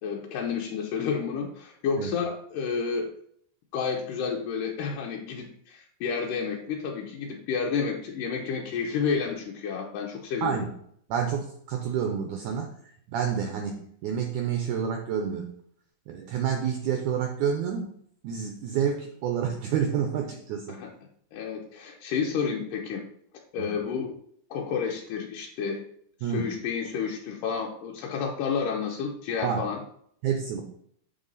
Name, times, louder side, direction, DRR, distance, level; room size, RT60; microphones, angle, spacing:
voice 1, 0.0-3.1 3.7-10.6 20.8-20.9 21.3-23.0 23.5-24.1 24.5-25.8 26.2-29.8, left 6 dB, 75° left, -1 dB, 2.2 m, -30 dB
voice 2, 11.1-12.7 13.1-15.5 16.1-17.9 18.2-20.8 23.6-23.7 26.2-26.5 29.4-29.7 30.2-30.6, right 8 dB, 75° right, 4 dB, 1.9 m, -29 dB
7.6 x 6.1 x 4.0 m, 0.67 s
omnidirectional pair, 4.2 m